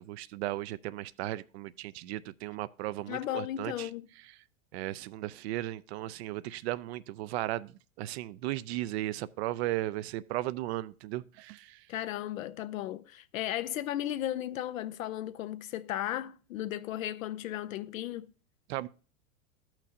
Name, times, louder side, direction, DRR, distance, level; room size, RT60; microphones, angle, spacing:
voice 1, 0.0-3.9 4.7-11.9 18.7-18.9, right 16 dB, 50° right, 0.5 m, -36 dB
voice 2, 3.1-4.1 11.9-18.3, left 12 dB, 75° left, 0.5 m, -35 dB
13.5 x 5.9 x 2.7 m
hypercardioid pair, 100°, 41 cm